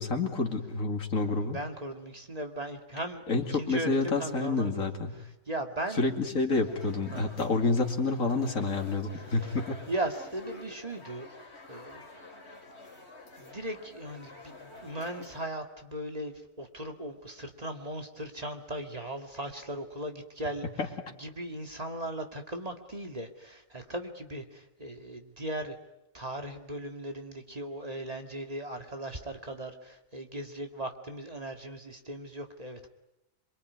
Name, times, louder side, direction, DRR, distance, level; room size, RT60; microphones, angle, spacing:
voice 1, 0.0-1.6 3.3-5.1 5.9-9.8 20.8-20.9, left 3 dB, 75° left, 3 dB, 2.8 m, -28 dB
voice 2, 1.2-3.2 3.5-4.9 5.2-6.1 7.1-7.2 9.4-9.6 9.9-11.3 11.7-12.0 13.4-20.7 21.2-25.7 26.1-32.9, right 1 dB, 25° right, 4 dB, 2.2 m, -38 dB
sound 1, 6.7-15.5, left 2 dB, 50° left, 3.5 m, -49 dB
27.0 x 22.5 x 9.6 m, 0.92 s
omnidirectional pair, 1.4 m